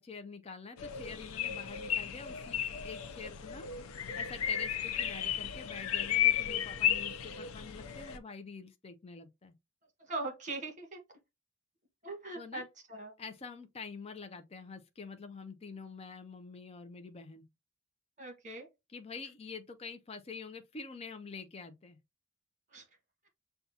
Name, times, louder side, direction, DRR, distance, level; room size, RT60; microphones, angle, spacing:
voice 1, 0.0-9.5 12.3-12.7 13.2-17.4 18.9-22.0, left 4 dB, 30° left, 0.5 m, -46 dB
sound 1, 0.8-8.2, left 10 dB, 80° left, 0.5 m, -34 dB
voice 2, 10.0-11.0 12.0-12.6 12.9-13.1 18.2-18.7 22.7-22.9, right 2 dB, 35° right, 1.4 m, -40 dB
6.8 x 2.3 x 2.7 m
head